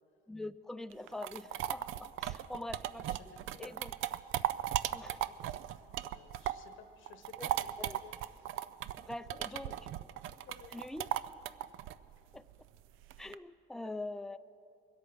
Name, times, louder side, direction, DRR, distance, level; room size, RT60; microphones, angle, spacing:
voice 1, 0.3-3.2 3.6-3.9 4.9-5.2 7.4-7.5 7.8-8.0 9.0-9.9 10.7-11.1 12.3-12.4 13.2-14.4, left 2 dB, ahead, 12 dB, 0.4 m, -44 dB
sound 1, 0.9-6.7 7.1-13.3, right 13 dB, 85° right, 0.4 m, -37 dB
voice 2, 3.1-3.8 4.3-4.7 5.0-5.3 6.1-7.5 7.8-8.2 9.3-9.4 9.7-9.8 10.2-10.8 13.8-13.9, left 7 dB, 85° left, 8 dB, 1.2 m, -56 dB
22.5 x 8.3 x 6.1 m, 2.5 s
cardioid pair, 90°, 20 cm